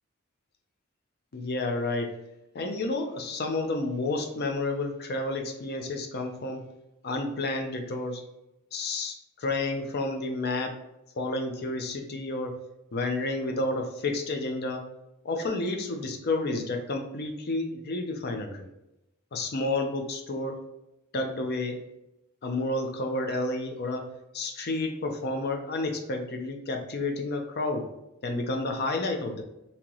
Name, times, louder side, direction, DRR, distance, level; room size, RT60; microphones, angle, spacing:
voice 1, 1.3-2.1 2.5-6.6 7.0-8.2 8.7-10.7 11.2-12.5 12.9-14.8 15.2-18.7 19.3-20.6 21.1-21.8 22.4-24.1 24.3-27.9 28.2-29.4, left 2 dB, 50° left, 4 dB, 0.5 m, -30 dB
3.0 x 2.9 x 3.8 m, 0.90 s
head